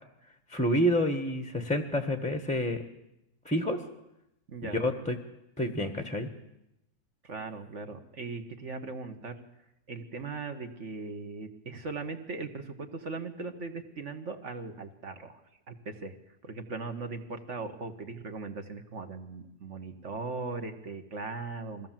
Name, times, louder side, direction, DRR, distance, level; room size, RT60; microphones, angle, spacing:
voice 1, 0.5-2.8 3.4-3.8 4.7-5.2 5.6-6.3, equal, 5° left, 7 dB, 1.0 m, -28 dB
voice 2, 4.5-4.8 7.2-9.4 9.9-15.4 15.7-16.1 16.4-21.9, right 3 dB, 45° right, 6 dB, 1.6 m, -39 dB
22.0 x 16.0 x 7.5 m, 0.88 s
omnidirectional pair, 1.8 m